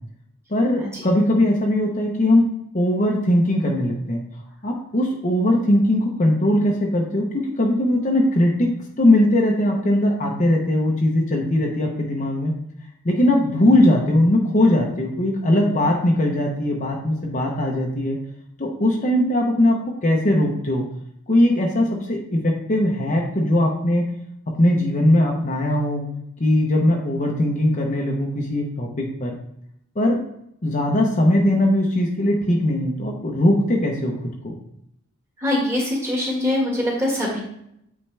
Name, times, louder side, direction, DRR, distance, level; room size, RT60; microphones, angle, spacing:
voice 1, 0.5-4.2 4.6-8.7 9.0-12.5 13.0-18.2 18.6-20.8 21.3-24.0 24.6-26.0 26.4-29.3 29.9-30.2 30.6-34.1 34.4-34.6, left 1 dB, 35° left, -1 dB, 0.9 m, -20 dB
voice 2, 35.4-37.4, left 1 dB, 10° right, -3 dB, 1.8 m, -23 dB
8.7 x 3.8 x 3.4 m, 0.75 s
head